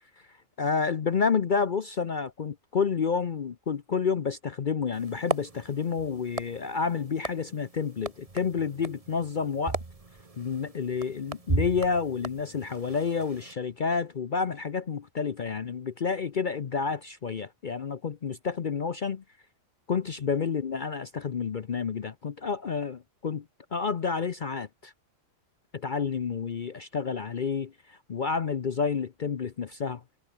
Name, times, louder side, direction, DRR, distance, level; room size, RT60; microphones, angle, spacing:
voice 1, 0.6-9.8 10.4-19.2 19.9-23.4 23.7-24.9 25.7-30.0, left 5 dB, 45° left, 0.8 m, -29 dB
sound 1, 4.9-13.5, right 3 dB, 25° right, 1.6 m, -37 dB
omnidirectional pair, 1.4 m